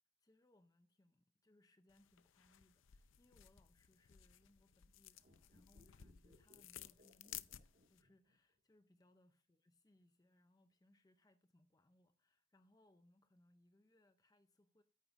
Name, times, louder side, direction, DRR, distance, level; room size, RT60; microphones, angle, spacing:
voice 1, 0.2-14.8, left 1 dB, 20° left, 0.5 m, -73 dB
sound 1, 1.9-8.0, left 12 dB, 80° left, 0.5 m, -57 dB
sound 2, 5.2-8.6 8.8-8.9, left 1 dB, 50° right, 1.9 m, -70 dB
14.0 x 8.5 x 2.5 m
head